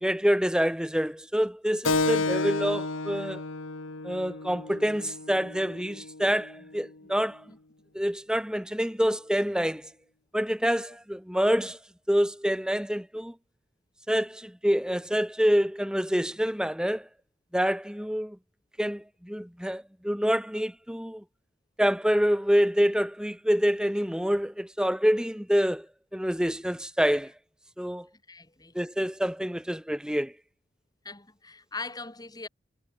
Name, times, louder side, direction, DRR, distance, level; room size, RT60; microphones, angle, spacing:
voice 1, 0.0-3.4 4.0-7.4 7.9-9.9 10.3-11.8 12.1-13.3 14.1-17.1 17.5-18.4 18.8-21.2 21.8-25.9 26.1-27.3 27.8-28.1 28.7-30.3, equal, 5° right, 2.4 m, -26 dB
Keyboard (musical), 1.8-6.9, left 3 dB, 80° left, 1.8 m, -31 dB
voice 2, 28.3-28.7 31.0-32.5, left 3 dB, 20° left, 4.7 m, -40 dB
head